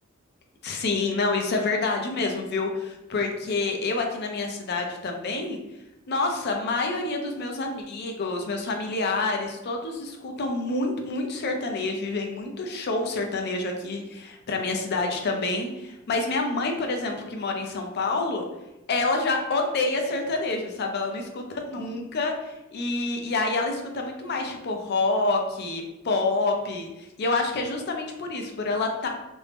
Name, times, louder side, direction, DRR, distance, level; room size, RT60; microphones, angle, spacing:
voice 1, 0.6-5.6 6.1-18.4 18.9-26.9 27.2-29.1, left 3 dB, 55° left, 3 dB, 0.5 m, -27 dB
2.6 x 2.0 x 3.3 m, 0.97 s
head